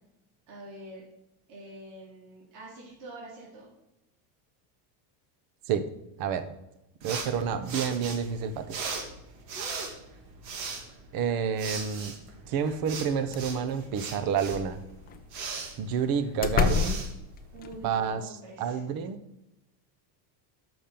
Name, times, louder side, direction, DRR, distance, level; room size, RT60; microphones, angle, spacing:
voice 1, 0.5-1.1 1.5-3.7 17.5-18.8, right 1 dB, 70° right, -4 dB, 3.1 m, -45 dB
voice 2, 6.2-6.5 7.0-8.8 11.1-12.1 12.5-14.8 15.8-17.0 17.8-19.2, right 7 dB, 45° right, 11 dB, 0.9 m, -29 dB
sound 1, 7.0-18.0, right 5 dB, 85° right, 2.0 m, -39 dB
sound 2, 13.0-13.1 13.3-13.7 14.3-15.2 15.9-16.0 16.4-18.0, left 6 dB, 20° left, 0.4 m, -29 dB
7.1 x 6.0 x 6.9 m, 0.89 s
cardioid pair, 145°, 50 cm